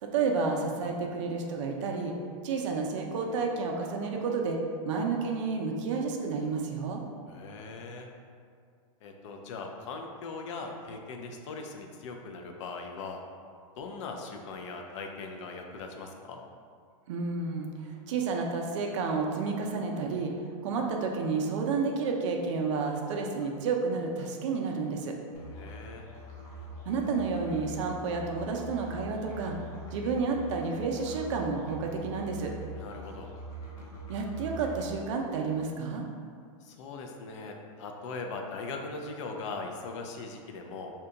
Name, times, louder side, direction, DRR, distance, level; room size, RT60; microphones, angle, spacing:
voice 1, 0.0-2.1 2.4-4.6 4.9-7.0 17.1-20.3 20.6-25.1 26.9-29.6 29.9-32.5 34.1-36.1, right 4 dB, 55° right, 2 dB, 0.4 m, -30 dB
voice 2, 7.3-8.1 9.0-13.2 13.8-16.4 25.5-26.0 32.7-33.3 36.6-40.9, left 3 dB, 55° left, 2 dB, 0.4 m, -40 dB
Musical instrument, 25.3-34.9, right 2 dB, 85° left, 1.0 m, -43 dB
2.7 x 2.2 x 3.7 m, 2.1 s
supercardioid pair, 155°, 18 cm